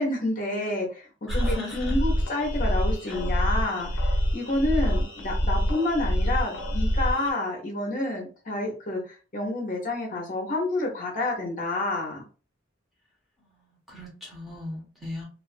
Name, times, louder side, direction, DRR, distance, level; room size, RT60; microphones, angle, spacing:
voice 1, 0.0-4.1 4.3-12.2, left 2 dB, 45° left, 0 dB, 0.8 m, -29 dB
sound 1, 1.3-7.3, equal, 90° left, 0.7 m, -26 dB
voice 2, 1.3-1.9 3.1-3.2 13.4-15.3, left 1 dB, ahead, -4 dB, 0.9 m, -38 dB
2.4 x 2.3 x 2.5 m, 0.36 s
head